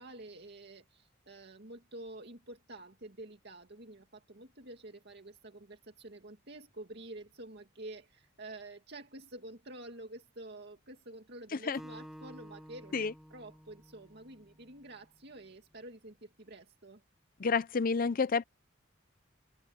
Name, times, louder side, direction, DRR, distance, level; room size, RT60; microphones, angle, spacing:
voice 1, 0.0-17.0, right 2 dB, 55° right, 2.3 m, -49 dB
Acoustic guitar, 11.8-15.1, equal, ahead, 1.6 m, -52 dB
voice 2, 17.4-18.4, left 4 dB, 45° left, 0.5 m, -29 dB
head